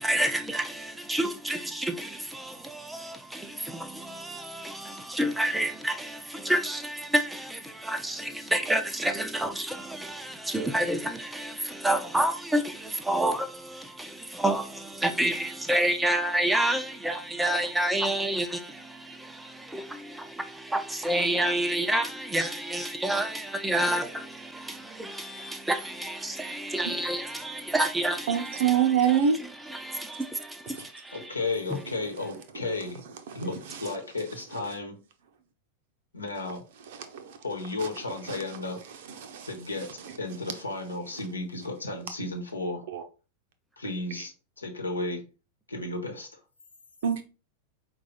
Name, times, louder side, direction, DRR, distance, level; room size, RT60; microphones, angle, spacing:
voice 1, 0.0-31.4 31.7-31.8, right 1 dB, 5° right, 0.5 m, -29 dB
voice 2, 28.3-29.4 30.8-30.9 33.3-33.9 36.9-37.4 37.8-37.9 38.3-38.4 39.1-39.5 40.0-40.2 42.9-43.0 47.0-47.2, right 8 dB, 55° right, 0.7 m, -26 dB
voice 3, 31.1-33.0 33.3-34.9 36.1-36.6 37.4-38.8 39.5-39.9 40.2-42.8 43.8-45.2 45.7-46.4, left 2 dB, 80° left, 1.0 m, -33 dB
4.7 x 2.3 x 4.0 m
figure-of-eight pair, 90°, 0 cm